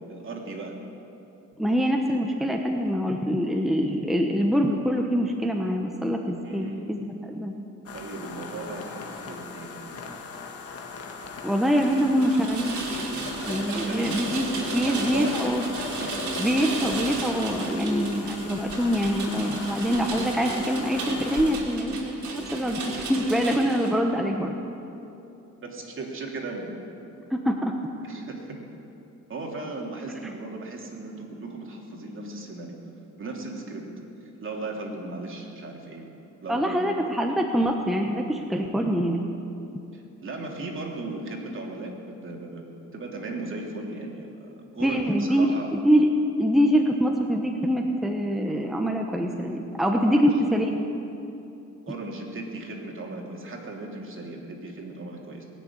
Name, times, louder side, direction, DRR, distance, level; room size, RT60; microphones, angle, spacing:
voice 1, 0.1-0.7 6.4-7.1 7.9-10.0 13.6-14.2 14.9-15.4 15.8-16.3 25.6-26.7 28.0-28.6 29.3-32.7 33.2-33.8 34.2-36.1 36.4-37.2 39.9-44.3 44.7-45.7 50.1-50.3 51.9-55.4, right 2 dB, 40° right, 0 dB, 3.0 m, -37 dB
voice 2, 1.6-7.5 11.4-12.8 13.5-14.5 14.7-15.6 16.4-24.5 27.3-27.7 36.5-39.4 44.8-46.1 46.4-50.7, equal, ahead, 2 dB, 1.1 m, -24 dB
sound 1, 7.9-21.5, left 5 dB, 50° left, 1.6 m, -39 dB
Rain, 11.6-23.9, right 3 dB, 65° right, 2.8 m, -34 dB
20.0 x 6.8 x 9.4 m, 2.8 s
cardioid pair, 90°, 30 cm